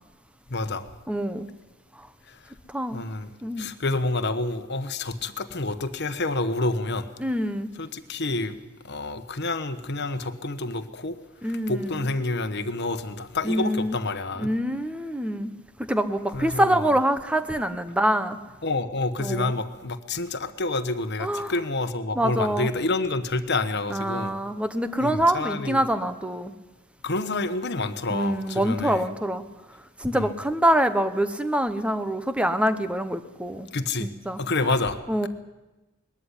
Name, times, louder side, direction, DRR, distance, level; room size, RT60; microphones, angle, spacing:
voice 1, 0.5-0.9 2.3-2.4 2.9-3.3 3.6-7.1 7.8-8.6 8.8-11.2 11.4-14.5 16.3-16.9 18.6-24.3 25.0-25.8 27.0-29.0 30.1-30.3 33.7-34.1 34.4-35.0, left 2 dB, 50° left, 10 dB, 1.3 m, -28 dB
voice 2, 1.1-1.5 2.0-2.1 2.7-3.0 3.4-3.7 7.2-7.7 11.4-12.1 13.4-14.0 14.4-15.5 15.8-18.4 19.2-19.5 21.2-21.5 22.1-22.7 23.9-26.5 28.1-29.4 30.0-33.7 34.0-34.4 35.1-35.3, right 1 dB, 5° right, 10 dB, 1.0 m, -25 dB
20.5 x 14.0 x 10.0 m, 1.1 s
head